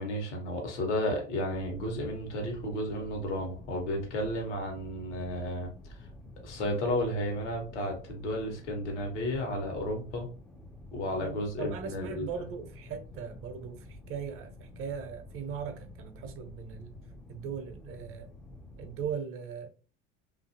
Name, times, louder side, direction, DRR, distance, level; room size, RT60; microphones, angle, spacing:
voice 1, 0.0-5.7 6.4-10.3 10.9-12.3, left 1 dB, 75° left, 1.0 m, -33 dB
sound 1, 1.5-19.2, left 2 dB, 5° left, 0.4 m, -49 dB
voice 2, 11.2-17.0 17.3-18.3 18.8-19.7, right 7 dB, 40° right, 0.7 m, -39 dB
2.6 x 2.5 x 2.6 m
figure-of-eight pair, 70°, 36 cm